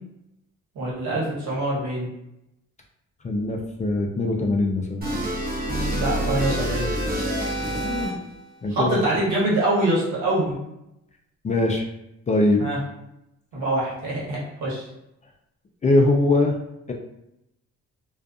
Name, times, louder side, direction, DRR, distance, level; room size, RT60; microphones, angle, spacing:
voice 1, 0.7-2.1 5.9-6.9 8.7-10.6 12.6-12.8 13.5-14.8, right 1 dB, 75° right, -5 dB, 1.2 m, -24 dB
voice 2, 3.2-5.0 7.6-8.1 8.6-9.0 11.4-11.9 12.3-12.6 15.8-16.6 16.9-17.0, left 2 dB, 25° left, 1 dB, 0.4 m, -22 dB
sound 1, 5.0-8.4, equal, 30° right, 0.8 m, -27 dB
2.5 x 2.3 x 2.4 m, 0.84 s
cardioid pair, 90°, 30 cm